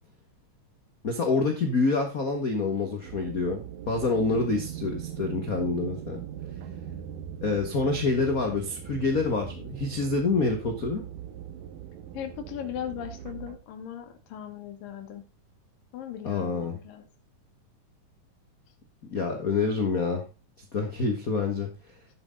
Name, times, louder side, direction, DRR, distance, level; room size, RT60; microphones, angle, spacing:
voice 1, 1.0-6.2 7.4-11.0 16.2-16.7 19.1-20.2 20.7-21.7, left 3 dB, 55° left, 4 dB, 0.9 m, -27 dB
sound 1, 3.0-13.6, right 10 dB, 85° right, 2.5 m, -40 dB
voice 2, 12.1-15.3 15.9-17.1, left 10 dB, 85° left, 6 dB, 3.1 m, -38 dB
11.0 x 8.1 x 3.8 m, 0.28 s
omnidirectional pair, 3.8 m